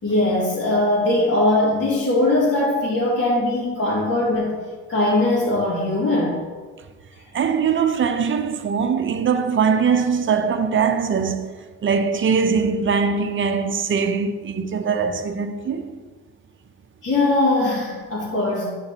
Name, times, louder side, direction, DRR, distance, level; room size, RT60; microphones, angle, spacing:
voice 1, 0.0-4.6 4.9-6.4 17.0-18.7, left 2 dB, 40° left, 2.4 m, -20 dB
voice 2, 7.3-11.5 11.8-15.9, right 6 dB, 40° right, 0.7 m, -21 dB
10.5 x 3.9 x 4.2 m
cardioid pair, 90°, 30 cm